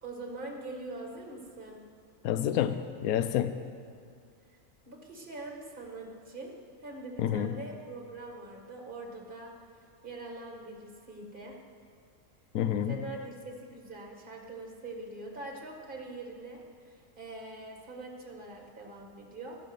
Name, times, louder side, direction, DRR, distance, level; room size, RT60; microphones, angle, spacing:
voice 1, 0.0-1.8 4.9-6.5 6.8-9.5 10.0-11.6 12.9-13.3 13.6-19.6, right 2 dB, 35° right, 1 dB, 2.0 m, -43 dB
voice 2, 2.2-3.6 7.2-7.5 12.5-13.0, left 10 dB, 80° left, 11 dB, 1.1 m, -28 dB
14.5 x 12.5 x 5.3 m, 2.2 s
omnidirectional pair, 1.5 m